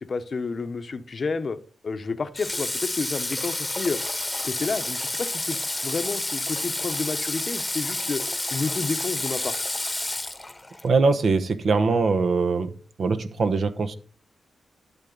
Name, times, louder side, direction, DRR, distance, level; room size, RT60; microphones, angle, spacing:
voice 1, 0.0-1.6 1.8-4.0 4.4-5.6 5.8-8.2 8.5-9.5, left 4 dB, 45° left, 11 dB, 0.9 m, -30 dB
Water / Water tap faucet, 2.4-10.9, left 2 dB, 15° left, 1.1 m, -30 dB
voice 2, 10.8-12.7 13.0-13.9, right 4 dB, 60° right, 9 dB, 1.0 m, -22 dB
12.0 x 7.1 x 3.9 m, 0.40 s
cardioid pair, 85°, 0 cm